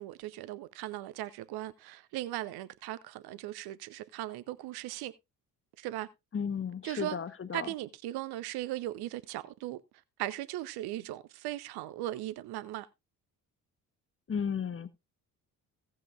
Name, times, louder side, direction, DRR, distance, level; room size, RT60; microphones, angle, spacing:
voice 1, 0.0-5.1 5.8-6.1 6.8-7.2 7.5-9.8 10.2-12.9, right 15 dB, 55° right, 0.8 m, -38 dB
voice 2, 6.3-7.7 14.3-14.9, left 7 dB, 25° left, 1.2 m, -34 dB
17.0 x 7.7 x 2.5 m
figure-of-eight pair, 45°, 48 cm